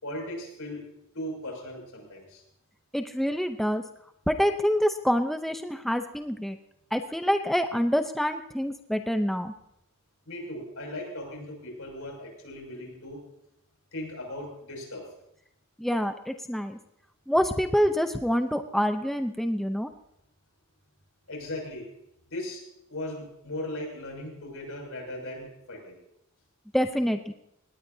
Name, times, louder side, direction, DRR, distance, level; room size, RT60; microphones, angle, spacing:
voice 1, 0.0-0.9 1.1-2.4 10.3-13.2 13.9-15.1 21.3-21.9 22.3-22.6 22.9-26.0, left 1 dB, 75° left, 1 dB, 6.4 m, -38 dB
voice 2, 2.9-3.8 4.3-6.6 6.9-9.5 15.8-16.8 17.3-19.9 26.7-27.3, equal, ahead, 7 dB, 0.6 m, -26 dB
19.5 x 18.5 x 2.8 m, 0.80 s
head